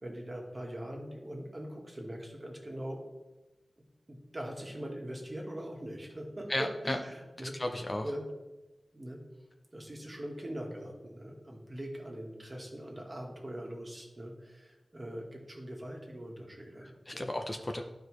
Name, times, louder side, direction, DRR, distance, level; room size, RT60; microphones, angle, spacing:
voice 1, 0.0-3.0 4.1-7.5 8.0-8.3 8.9-9.2 9.7-17.3, right 1 dB, 30° right, 0 dB, 1.5 m, -42 dB
voice 2, 6.5-7.0 7.4-8.1 16.8-17.8, left 1 dB, 30° left, 4 dB, 0.5 m, -34 dB
11.5 x 4.7 x 3.1 m, 1.1 s
wide cardioid pair, 95°, 0 cm